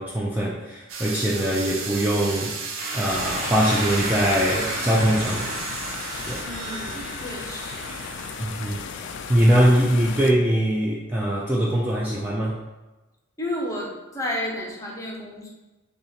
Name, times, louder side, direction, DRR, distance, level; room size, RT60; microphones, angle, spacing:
voice 1, 0.0-2.5 2.9-5.5 6.2-6.4 8.4-12.6, equal, 10° right, -5 dB, 0.4 m, -22 dB
sound 1, 0.9-6.4, right 4 dB, 85° right, 0.7 m, -34 dB
sound 2, 2.8-8.9, right 2 dB, 45° right, 0.7 m, -33 dB
sound 3, 3.0-10.3, left 6 dB, 60° left, 0.3 m, -36 dB
voice 2, 6.4-8.0 13.4-15.5, left 1 dB, 15° left, -2 dB, 0.8 m, -32 dB
6.7 x 2.4 x 2.8 m, 1.1 s
head